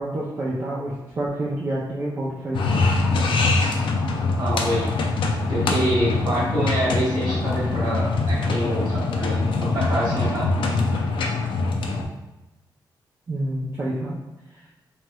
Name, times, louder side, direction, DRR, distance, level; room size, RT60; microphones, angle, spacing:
voice 1, 0.0-2.8 13.3-14.2, right 1 dB, 35° right, -6 dB, 0.4 m, -28 dB
sound 1, 2.5-12.1, left 3 dB, 90° left, 0.4 m, -23 dB
voice 2, 4.4-4.9 5.5-10.5, right 1 dB, 55° right, -7 dB, 1.3 m, -26 dB
3.0 x 2.9 x 2.2 m, 0.99 s
wide cardioid pair, 160°, 8 cm